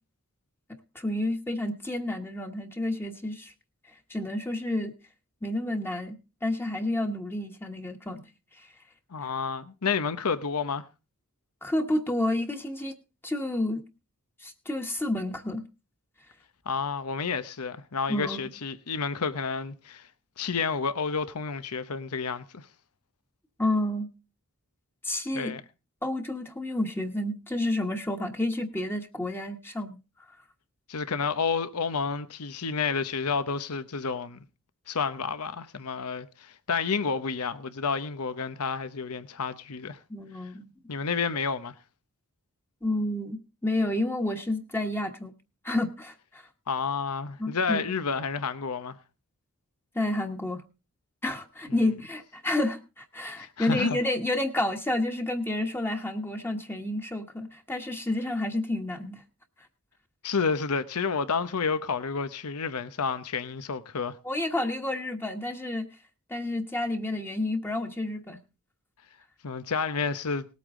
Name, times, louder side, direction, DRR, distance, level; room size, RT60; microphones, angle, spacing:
voice 1, 0.9-3.5 4.1-4.9 5.4-6.2 6.4-8.2 11.6-13.0 13.2-13.8 14.4-15.6 18.1-18.4 23.6-24.1 25.0-25.5 26.0-30.0 40.1-40.7 42.8-45.3 45.6-46.4 47.4-47.9 49.9-50.6 51.2-59.2 64.2-65.9 66.3-68.4, left 1 dB, 10° left, 1.3 m, -30 dB
voice 2, 9.1-10.8 16.7-20.1 20.4-22.7 25.3-25.6 30.9-34.4 34.9-40.0 40.9-41.7 46.7-49.0 53.4-54.0 60.2-64.2 69.4-70.5, left 5 dB, 90° left, 0.8 m, -30 dB
19.5 x 8.5 x 3.7 m
head